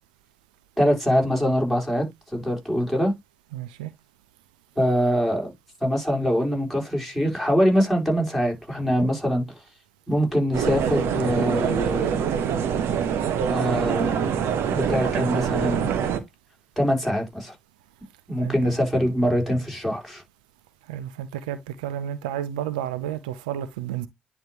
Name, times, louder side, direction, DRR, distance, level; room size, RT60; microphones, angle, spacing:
voice 1, 0.8-2.1 2.3-3.1 4.8-5.5 5.8-9.4 10.1-12.2 13.5-14.3 14.7-15.9 16.8-17.5 18.3-20.2, equal, ahead, 4.1 m, -23 dB
voice 2, 3.5-3.9 18.4-18.5 20.9-24.1, right 10 dB, 85° right, 0.5 m, -31 dB
sound 1, 10.5-16.2, right 8 dB, 65° right, 1.1 m, -24 dB
10.0 x 3.5 x 2.9 m
hypercardioid pair, 50°, 4 cm